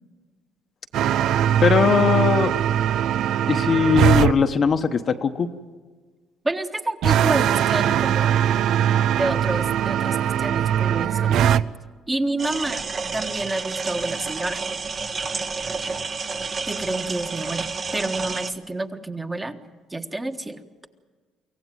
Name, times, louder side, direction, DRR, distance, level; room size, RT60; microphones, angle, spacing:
sound 1, 0.9-4.3 7.0-11.6, right 10 dB, 70° right, 0.6 m, -20 dB
voice 1, 1.6-2.5 3.5-5.5, left 6 dB, 45° left, 6 dB, 1.1 m, -19 dB
voice 2, 6.4-8.4 9.2-11.6 12.1-12.8 13.1-14.6 16.7-19.6 19.9-20.6, right 2 dB, 15° right, 5 dB, 1.4 m, -29 dB
sound 2, 12.4-18.5, right 4 dB, 40° right, 1.3 m, -30 dB
24.0 x 16.5 x 9.2 m, 1.4 s
cardioid pair, 105°, 0 cm